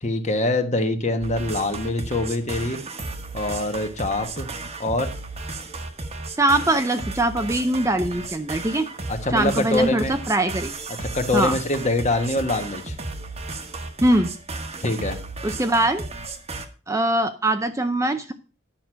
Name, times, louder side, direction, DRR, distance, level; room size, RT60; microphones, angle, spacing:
voice 1, 0.0-2.8 3.3-4.5 4.8-5.1 9.1-10.2 11.1-12.9 14.8-15.2, left 2 dB, 35° left, 7 dB, 1.3 m, -24 dB
sound 1, 1.2-16.7, right 3 dB, 30° right, 1.2 m, -34 dB
voice 2, 6.4-8.9 9.3-10.8 11.3-11.6 14.0-14.3 15.4-16.0 16.9-18.3, right 1 dB, 15° right, 8 dB, 0.6 m, -22 dB
10.5 x 6.1 x 6.2 m, 0.36 s
head